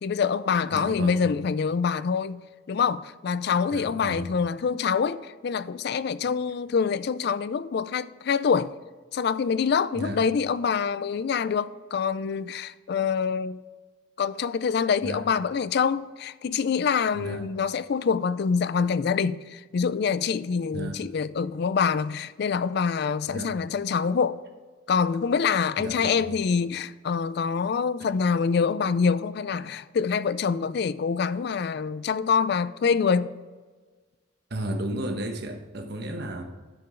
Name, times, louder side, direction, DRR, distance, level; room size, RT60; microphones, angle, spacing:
voice 1, 0.0-2.4 2.7-8.7 9.1-13.6 14.2-24.4 24.9-33.3, left 6 dB, 55° left, 0.4 m, -25 dB
voice 2, 0.7-1.3 3.7-4.3 9.9-10.2 15.0-15.2 17.1-17.4 20.7-21.0 23.3-23.5 25.8-26.2 34.5-36.4, right 1 dB, 55° right, 1.1 m, -33 dB
10.5 x 6.9 x 3.8 m
head